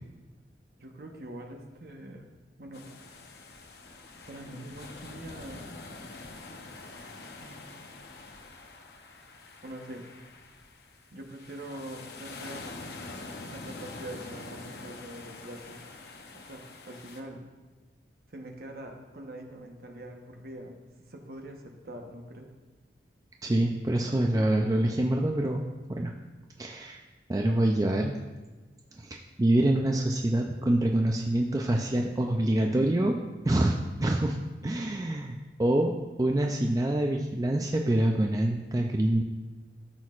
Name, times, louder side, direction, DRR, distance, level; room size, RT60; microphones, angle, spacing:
voice 1, 0.8-2.3 2.6-2.9 4.3-5.7 6.2-6.6 7.4-8.2 9.6-10.1 11.1-12.7 13.5-15.9 16.3-17.4 18.3-20.8 21.1-22.5, right 1 dB, 55° right, 2 dB, 1.1 m, -44 dB
sound 1, 2.7-17.2, left 3 dB, 65° left, 0.8 m, -45 dB
voice 2, 23.4-26.1 26.6-27.0 27.3-28.1 29.0-33.2 33.4-34.4 34.6-35.9 36.2-39.2, right 1 dB, 20° right, 2 dB, 0.4 m, -26 dB
13.5 x 6.2 x 2.5 m, 1.3 s
head